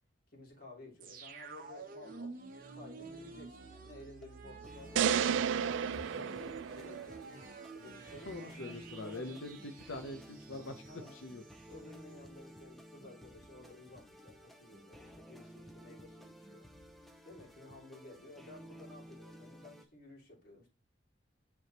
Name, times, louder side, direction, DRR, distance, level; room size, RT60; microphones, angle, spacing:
voice 1, 0.3-2.4 2.7-7.3 7.7-9.3 10.9-11.2 11.7-16.7 17.2-20.7, left 2 dB, 45° left, 2.4 m, -54 dB
sound 1, 1.0-11.8 12.1-12.2, right 4 dB, 45° right, 0.9 m, -50 dB
sound 2, 3.9-19.8, equal, ahead, 0.6 m, -54 dB
sound 3, 5.0-7.3, right 8 dB, 75° right, 0.3 m, -32 dB
voice 2, 8.2-11.4, left 2 dB, 90° left, 0.8 m, -44 dB
9.3 x 3.5 x 3.0 m
head